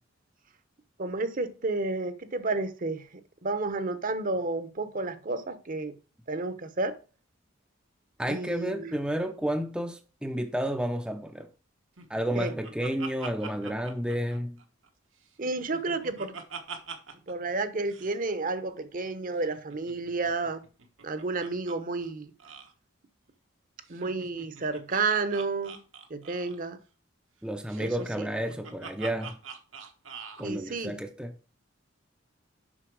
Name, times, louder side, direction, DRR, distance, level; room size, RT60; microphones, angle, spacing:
voice 1, 1.0-3.1 3.4-5.9 6.3-6.9 8.3-8.9 12.3-12.5 15.4-16.4 17.3-20.6 21.0-22.3 23.9-25.8 26.1-26.8 27.8-27.9 30.4-30.9, right 3 dB, 45° right, 0.9 m, -31 dB
voice 2, 8.2-11.5 12.1-14.6 27.4-29.4 30.4-31.4, equal, 5° right, 0.5 m, -31 dB
Laughter, 12.0-14.9 15.2-17.3 17.6-17.7 17.9-18.1 19.4-21.8 22.0-22.1 22.4-22.7 23.9-26.7 27.7-30.5, right 5 dB, 80° right, 1.4 m, -44 dB
7.4 x 5.7 x 4.7 m
head